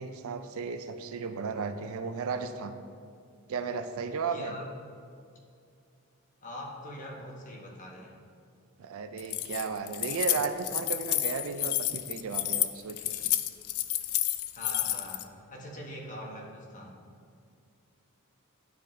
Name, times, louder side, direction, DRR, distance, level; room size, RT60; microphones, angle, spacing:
voice 1, 0.0-2.8 3.5-4.6 8.8-13.1, right 5 dB, 65° right, 9 dB, 0.4 m, -34 dB
voice 2, 4.2-4.6 6.4-8.2 14.5-17.0, equal, 35° left, -2 dB, 1.1 m, -43 dB
Keys jangling, 9.2-15.2, left 14 dB, 75° left, 0.3 m, -30 dB
10.0 x 3.9 x 3.2 m, 2.3 s
head